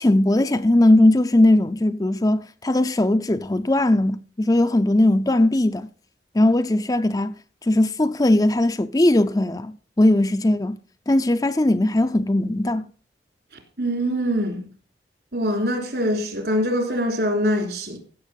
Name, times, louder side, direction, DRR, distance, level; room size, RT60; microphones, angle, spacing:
voice 1, 0.0-5.9 6.3-7.3 7.6-10.8 11.1-12.9, left 1 dB, 20° left, 0.5 m, -19 dB
voice 2, 13.8-14.6 15.3-18.0, equal, 70° right, 3.6 m, -23 dB
15.5 x 6.9 x 5.3 m
head